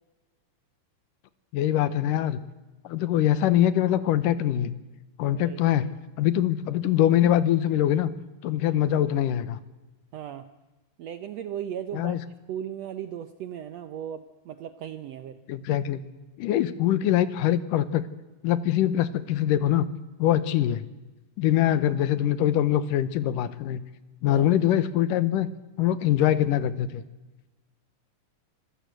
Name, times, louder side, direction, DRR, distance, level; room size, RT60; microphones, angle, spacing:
voice 1, 1.5-2.4 2.8-4.7 5.2-5.9 6.2-8.1 8.4-9.6 11.9-12.2 15.5-16.0 16.4-18.0 18.4-19.9 20.2-20.8 21.4-23.8 24.2-25.5 25.8-27.0, left 11 dB, 75° left, 15 dB, 2.5 m, -23 dB
voice 2, 5.3-5.6 10.1-10.5 11.0-12.2 12.5-15.4 24.3-24.5, right 10 dB, 75° right, 11 dB, 1.6 m, -36 dB
25.0 x 15.5 x 7.8 m, 1.1 s
omnidirectional pair, 4.0 m